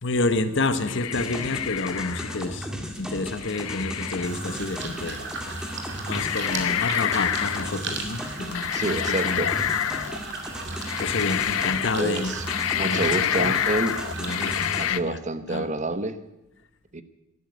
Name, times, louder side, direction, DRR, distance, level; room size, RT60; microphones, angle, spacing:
voice 1, 0.0-2.7 3.0-9.5 10.6-10.7 11.0-13.6 14.2-15.2 15.5-15.7, left 2 dB, 60° left, 1.1 m, -29 dB
sound 1, 0.8-2.5 3.4-4.3 5.5-5.6 6.1-7.8 8.5-10.3 10.8-12.0 12.2-15.0, left 11 dB, 85° left, 0.5 m, -28 dB
sound 2, 1.1-14.8, equal, 5° right, 1.9 m, -36 dB
sound 3, 4.2-14.7, right 4 dB, 60° right, 2.5 m, -37 dB
voice 2, 8.7-9.5 12.0-12.5 12.8-14.0 14.8-16.2 16.9-17.0, right 2 dB, 35° right, 1.0 m, -28 dB
12.5 x 12.0 x 9.3 m
head